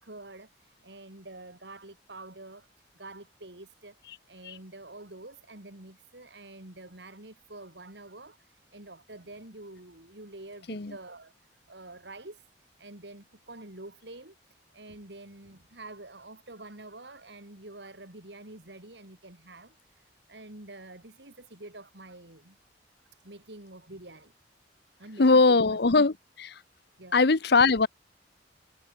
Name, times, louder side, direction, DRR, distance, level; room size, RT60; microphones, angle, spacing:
voice 1, 0.0-22.6 23.1-24.3 25.0-25.8 27.0-27.3, right 2 dB, 70° right, 3.7 m, -47 dB
voice 2, 25.2-26.6 27.1-27.9, left 3 dB, 65° left, 0.9 m, -21 dB
head